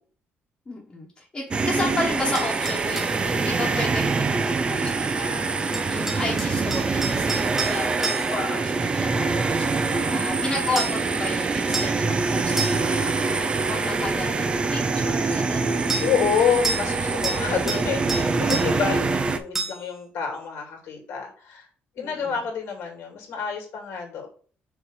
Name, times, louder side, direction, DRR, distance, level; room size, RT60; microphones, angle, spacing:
voice 1, 0.7-1.1 1.3-16.0 22.0-22.3, left 2 dB, 20° left, -4 dB, 1.3 m, -33 dB
sound 1, 1.5-19.4, right 4 dB, 25° right, 0.5 m, -24 dB
sound 2, 2.4-3.2 5.7-8.5 10.8-11.1 11.7-12.0 12.6-13.0 15.9-16.1 16.6-17.0 17.2-17.8 18.1-18.7 19.6-19.9, right 3 dB, 10° right, 1.0 m, -30 dB
voice 2, 7.4-7.8 9.9-10.3 16.0-21.7 21.9-24.3, left 6 dB, 90° left, 1 dB, 2.5 m, -28 dB
6.0 x 3.1 x 5.6 m, 0.43 s
cardioid pair, 155°, 4 cm